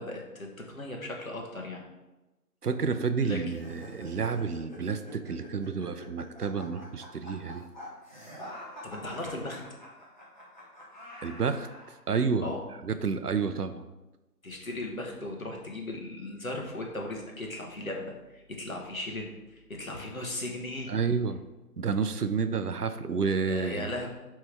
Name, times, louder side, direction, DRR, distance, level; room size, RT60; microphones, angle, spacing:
voice 1, 0.0-1.8 3.2-3.6 8.8-9.6 12.4-12.6 14.4-20.9 23.4-24.1, left 1 dB, 60° left, 0 dB, 1.3 m, -37 dB
voice 2, 2.6-7.6 11.2-11.7 12.1-12.5 12.8-13.8 20.9-21.4 21.8-23.9, right 5 dB, 70° right, 10 dB, 0.6 m, -30 dB
sound 1, 3.5-12.0, left 1 dB, 30° left, 1.3 m, -46 dB
9.1 x 3.4 x 3.3 m, 1.1 s
figure-of-eight pair, 170°, 48 cm